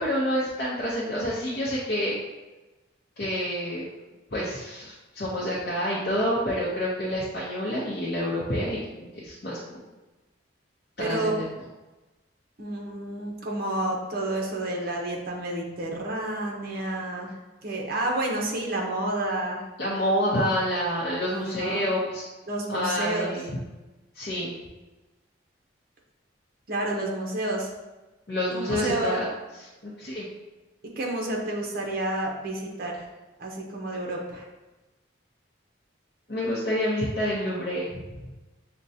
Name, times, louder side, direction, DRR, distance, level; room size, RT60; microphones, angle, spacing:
voice 1, 0.0-2.2 3.2-3.8 4.3-9.8 11.0-11.5 19.8-22.2 22.7-23.6 24.1-24.5 28.3-29.3 29.6-30.3 36.3-38.2, equal, 55° left, -7 dB, 0.7 m, -28 dB
voice 2, 11.0-11.4 12.6-17.3 17.6-19.6 21.3-21.8 22.5-23.3 26.7-27.7 28.5-29.2 31.0-33.1 33.4-34.5, right 1 dB, 50° right, -1 dB, 0.7 m, -30 dB
6.2 x 2.2 x 2.7 m, 1.1 s
head